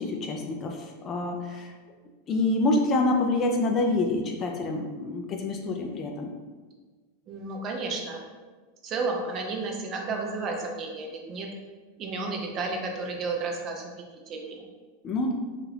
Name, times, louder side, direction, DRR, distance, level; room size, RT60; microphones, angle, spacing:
voice 1, 0.0-1.7 2.3-6.3 15.0-15.3, left 2 dB, 30° left, 2 dB, 0.3 m, -27 dB
voice 2, 7.3-8.2 8.8-11.5 12.0-13.8 14.3-14.7, right 3 dB, 30° right, 1 dB, 0.5 m, -32 dB
2.8 x 2.4 x 3.2 m, 1.4 s
supercardioid pair, 145°, 0 cm